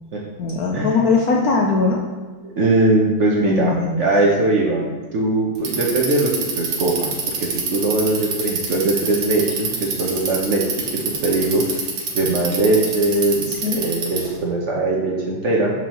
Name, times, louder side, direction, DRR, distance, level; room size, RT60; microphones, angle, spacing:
voice 1, 0.4-2.0 3.4-4.1 13.5-13.8, left 4 dB, 75° left, -1 dB, 0.8 m, -20 dB
voice 2, 2.4-3.7 4.0-6.3 6.6-7.1 7.4-10.9 11.2-11.6 12.1-15.7, right 2 dB, 65° right, -3 dB, 0.7 m, -20 dB
Bicycle, 5.6-14.4, right 5 dB, 90° right, 1.9 m, -26 dB
6.9 x 4.6 x 3.0 m, 1.4 s
omnidirectional pair, 2.2 m